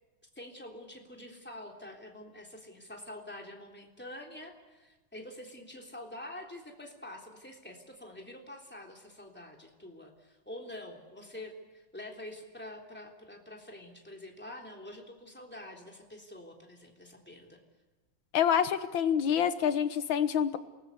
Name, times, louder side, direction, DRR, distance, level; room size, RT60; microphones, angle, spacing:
voice 1, 0.3-17.6, left 1 dB, 5° left, 1 dB, 3.4 m, -46 dB
voice 2, 18.3-20.6, left 8 dB, 70° left, 11 dB, 1.9 m, -27 dB
28.0 x 20.0 x 8.4 m, 1.2 s
omnidirectional pair, 2.3 m